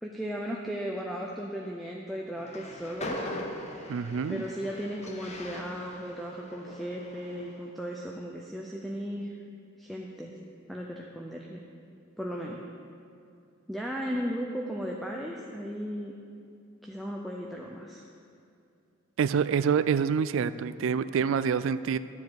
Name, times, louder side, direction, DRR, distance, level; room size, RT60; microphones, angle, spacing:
voice 1, 0.0-3.2 4.3-9.4 9.8-10.3 10.7-11.6 12.2-12.6 13.7-16.1 16.8-18.0, equal, ahead, -1 dB, 0.5 m, -36 dB
Train, 2.4-7.7, left 1 dB, 35° left, 0.9 m, -41 dB
voice 2, 3.9-4.4 19.2-22.0, right 6 dB, 65° right, 14 dB, 0.3 m, -26 dB
12.5 x 7.3 x 4.7 m, 2.5 s
head